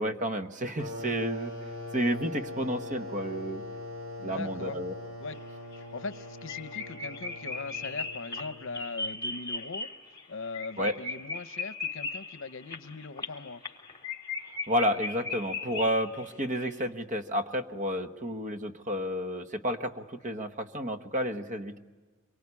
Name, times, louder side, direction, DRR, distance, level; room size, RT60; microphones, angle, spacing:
voice 1, 0.0-3.6 4.2-4.9 10.8-10.9 14.7-21.8, equal, 35° right, 8 dB, 1.2 m, -31 dB
sound 1, 0.8-9.2, left 1 dB, 65° right, 5.0 m, -41 dB
voice 2, 4.2-4.8 5.2-5.4 5.8-9.9 10.3-13.6, left 4 dB, 65° left, 13 dB, 0.8 m, -40 dB
sound 2, 5.3-5.4 5.7-5.8 6.1-6.2 6.5-16.3 16.6-16.7, left 3 dB, 20° left, 3.5 m, -37 dB
26.0 x 23.0 x 9.7 m, 1.4 s
head